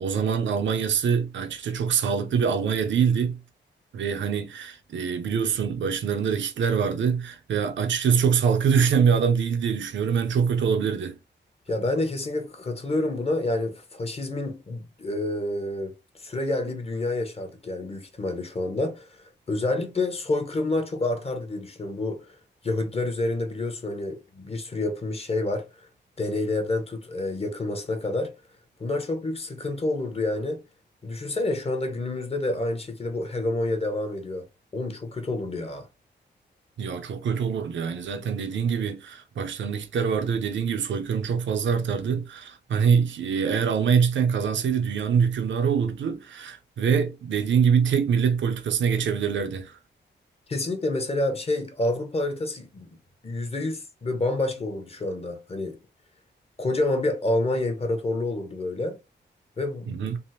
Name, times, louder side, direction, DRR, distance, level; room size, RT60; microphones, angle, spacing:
voice 1, 0.0-3.4 3.9-11.2 36.8-49.8 59.9-60.2, right 6 dB, 75° right, 0.6 m, -24 dB
voice 2, 11.7-22.4 22.6-25.9 26.2-28.3 28.8-30.6 31.0-34.5 34.7-35.9 50.5-53.0 53.2-55.8 56.6-59.0 59.6-60.1, left 2 dB, 30° left, 0.7 m, -28 dB
3.4 x 2.0 x 2.8 m
wide cardioid pair, 115°, 19 cm